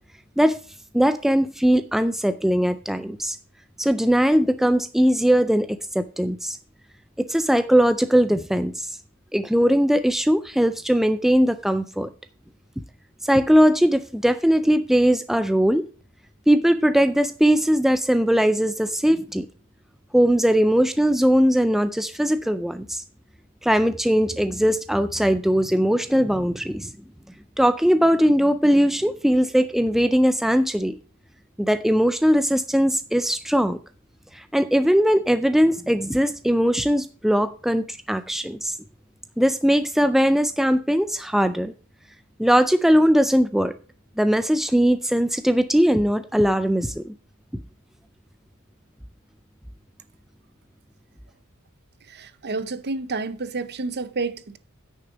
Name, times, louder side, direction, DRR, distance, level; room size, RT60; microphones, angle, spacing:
voice 1, 0.9-3.4 3.8-6.6 7.2-8.9 9.3-12.1 13.2-15.8 16.5-19.5 20.1-23.0 23.6-26.9 27.6-31.0 31.6-33.8 34.3-38.7 39.4-41.7 42.4-43.7 44.2-47.1, equal, ahead, 0.3 m, -20 dB
voice 2, 52.1-54.6, right 3 dB, 50° right, 0.8 m, -30 dB
9.5 x 6.5 x 5.0 m
head